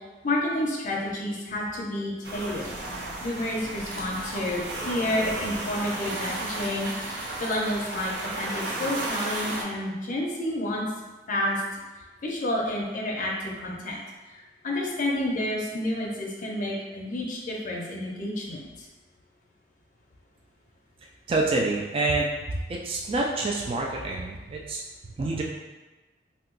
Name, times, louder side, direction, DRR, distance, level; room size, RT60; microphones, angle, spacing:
voice 1, 0.2-2.7 3.2-6.9 7.4-10.8 11.3-11.6 12.2-14.0 14.6-18.6, left 1 dB, 45° left, -2 dB, 0.5 m, -29 dB
sound 1, 2.2-9.6, right 2 dB, 85° right, 0.7 m, -33 dB
voice 2, 21.3-25.4, right 2 dB, 30° right, -1 dB, 0.3 m, -27 dB
2.8 x 2.2 x 3.7 m, 1.2 s
head